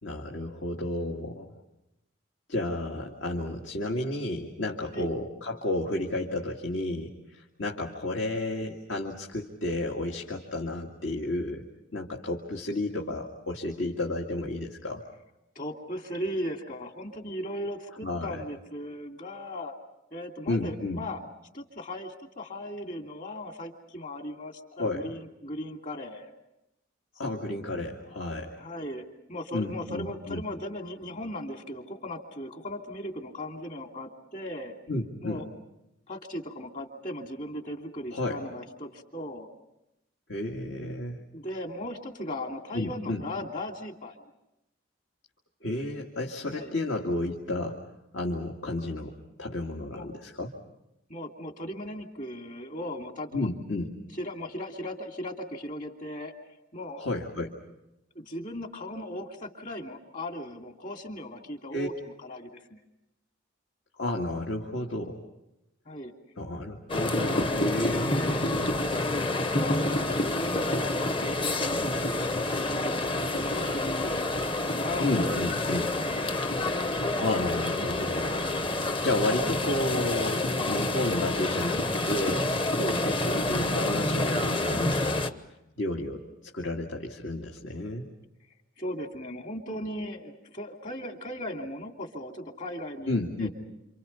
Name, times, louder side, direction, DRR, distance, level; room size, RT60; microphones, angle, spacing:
voice 1, 0.0-1.5 2.5-11.6 11.9-15.0 18.0-18.4 20.5-21.0 24.8-25.1 27.1-28.6 29.5-30.4 34.9-35.4 38.1-38.4 40.3-41.2 42.7-43.2 45.6-47.8 48.1-50.5 53.3-53.9 57.0-57.6 61.7-61.9 64.0-65.2 66.4-68.8 75.0-75.9 77.2-78.5 79.0-85.3 85.8-88.0 93.1-93.5, left 1 dB, 65° left, 0 dB, 2.2 m, -32 dB
voice 2, 15.5-19.8 20.1-21.2 21.5-26.4 28.6-34.7 35.2-35.4 36.1-39.5 41.3-44.2 46.5-46.7 49.9-50.1 51.1-53.5 54.1-56.3 56.7-57.0 58.1-61.9 62.2-62.8 65.8-66.1 69.3-74.1 74.8-75.3 88.8-93.5, left 1 dB, 40° left, 3 dB, 2.8 m, -37 dB
sound 1, 66.9-85.3, left 2 dB, 25° left, 1.0 m, -28 dB
28.5 x 28.0 x 5.6 m, 0.89 s
head